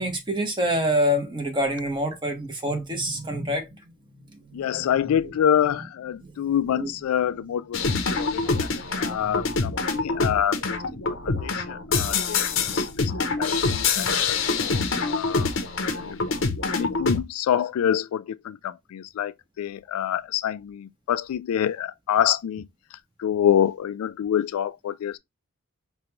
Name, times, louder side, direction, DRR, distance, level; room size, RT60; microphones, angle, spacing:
voice 1, 0.0-5.2 6.2-6.9 8.4-9.0 9.2-9.8, equal, 20° right, 0.8 m, -28 dB
voice 2, 4.5-7.8 8.2-8.7 9.0-10.8 11.2-12.5 12.7-13.1 13.4-15.5 16.0-16.2 16.8-22.7 23.2-25.2, left 9 dB, 90° left, 0.3 m, -26 dB
sound 1, 7.7-17.2, left 4 dB, 65° left, 0.6 m, -25 dB
5.0 x 2.3 x 2.9 m
head